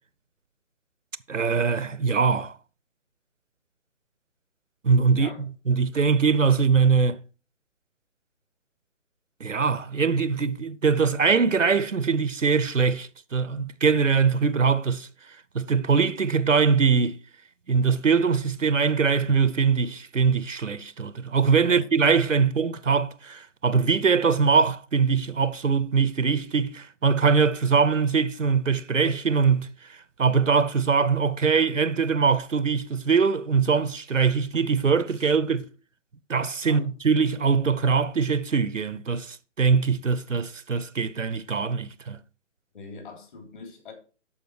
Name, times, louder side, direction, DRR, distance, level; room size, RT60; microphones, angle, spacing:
voice 1, 1.3-2.5 4.8-5.3 5.7-7.2 9.4-15.1 15.5-17.2 17.7-29.7 30.2-35.7 36.3-42.2, right 5 dB, 90° right, 0.8 m, -22 dB
voice 2, 42.7-43.9, left 4 dB, 45° left, 3.4 m, -42 dB
13.0 x 5.1 x 4.9 m
figure-of-eight pair, 145°, 37 cm